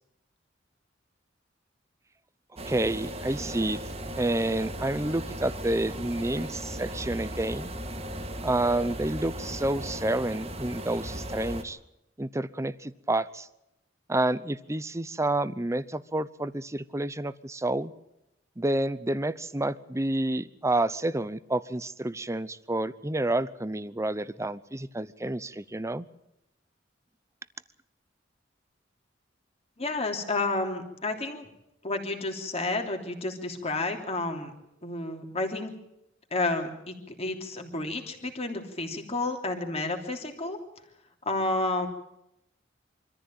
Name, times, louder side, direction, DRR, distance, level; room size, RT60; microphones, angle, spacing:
voice 1, 2.6-3.8 4.2-7.7 8.4-11.8 12.2-13.5 14.1-17.9 18.6-26.1, right 1 dB, 15° right, 16 dB, 0.8 m, -29 dB
sound 1, 2.6-11.6, right 1 dB, 35° right, 2.1 m, -37 dB
voice 2, 29.8-31.5 31.8-34.5 34.8-35.7 36.3-40.6 41.2-41.9, left 2 dB, 35° left, 4 dB, 3.1 m, -31 dB
25.0 x 14.5 x 8.9 m, 0.85 s
head